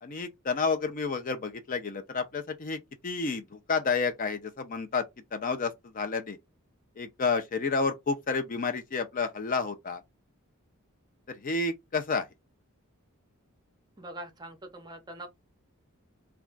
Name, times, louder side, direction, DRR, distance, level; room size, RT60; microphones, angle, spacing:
voice 1, 0.0-5.0 5.3-6.4 7.0-10.0 11.3-12.3, left 4 dB, 40° left, 0.4 m, -30 dB
voice 2, 14.0-15.3, right 1 dB, 20° right, 0.6 m, -43 dB
2.3 x 2.3 x 3.7 m
head